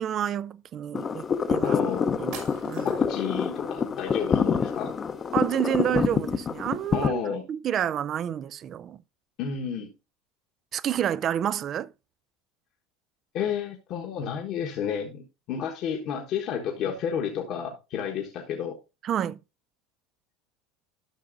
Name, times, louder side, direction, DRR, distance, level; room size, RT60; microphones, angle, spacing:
voice 1, 0.0-1.8 2.2-2.4 2.6-3.0 5.3-9.0 10.7-11.9 19.0-19.4, right 10 dB, 45° right, 0.3 m, -29 dB
sound 1, 0.9-7.1, left 6 dB, 30° left, 0.7 m, -26 dB
voice 2, 1.6-2.1 2.8-4.9 6.9-7.4 9.4-9.9 13.3-18.8, left 7 dB, 55° left, 1.2 m, -31 dB
sound 2, 2.3-3.2, right 6 dB, 70° right, 2.9 m, -42 dB
12.0 x 5.9 x 2.6 m
hypercardioid pair, 90°, 0 cm